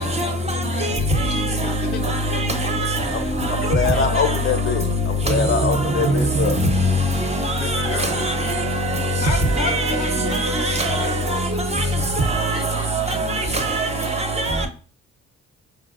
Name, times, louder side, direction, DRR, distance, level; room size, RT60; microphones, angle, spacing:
voice 1, 0.0-2.0 2.3-2.7 7.6-11.4 11.8-12.1 12.5-13.5 14.0-14.1, left 5 dB, 90° left, 0.7 m, -35 dB
voice 2, 2.3-3.0 3.4-3.7 5.7-6.1 7.2-8.5 9.6-10.0 10.3-11.4 11.7-11.8 12.3-12.6 12.9-14.7, right 1 dB, 20° right, 0.5 m, -23 dB
voice 3, 3.1-6.6, left 6 dB, 40° left, 0.5 m, -24 dB
sound 1, 7.7-11.6, right 5 dB, 75° right, 0.5 m, -32 dB
4.4 x 2.0 x 2.3 m
cardioid pair, 90°, 30 cm